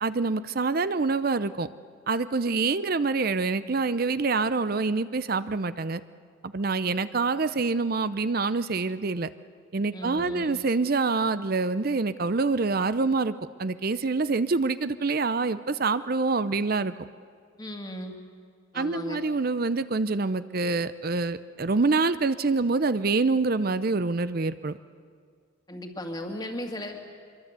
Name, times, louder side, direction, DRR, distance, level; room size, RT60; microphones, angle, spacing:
voice 1, 0.0-1.7 2.1-6.0 6.4-9.3 9.7-16.9 18.7-24.8, right 3 dB, 45° right, 14 dB, 0.6 m, -26 dB
voice 2, 9.9-10.6 17.6-18.2 18.7-19.2 25.7-27.0, left 1 dB, 20° left, 3 dB, 2.1 m, -36 dB
24.5 x 23.0 x 8.2 m, 2.1 s
head